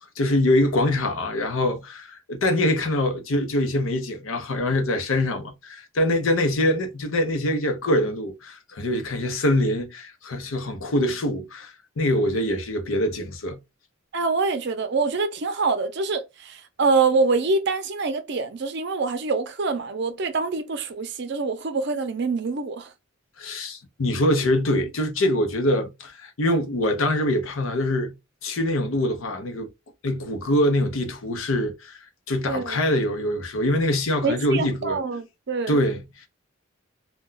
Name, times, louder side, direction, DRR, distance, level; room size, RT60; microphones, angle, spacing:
voice 1, 0.2-13.6 23.4-28.1 28.4-29.7 30.0-32.0 32.3-35.0 35.7-36.3, left 1 dB, 90° left, 0.7 m, -24 dB
voice 2, 14.1-22.9 32.5-32.8 34.2-35.8, right 4 dB, 55° right, 0.5 m, -25 dB
2.2 x 2.2 x 3.8 m
head